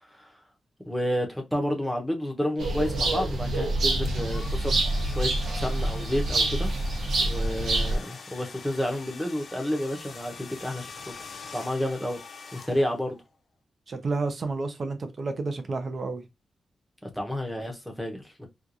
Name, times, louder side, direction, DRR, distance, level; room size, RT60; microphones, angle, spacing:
voice 1, 0.9-6.7 7.2-11.1 11.5-12.2 12.5-13.2 17.0-18.5, equal, ahead, 0.8 m, -30 dB
sound 1, 2.6-8.0, right 2 dB, 80° right, 0.9 m, -26 dB
sound 2, 4.0-13.2, left 5 dB, 45° left, 0.6 m, -45 dB
voice 2, 13.9-16.2, right 3 dB, 40° right, 0.6 m, -30 dB
4.4 x 2.4 x 2.5 m
wide cardioid pair, 155°, 0 cm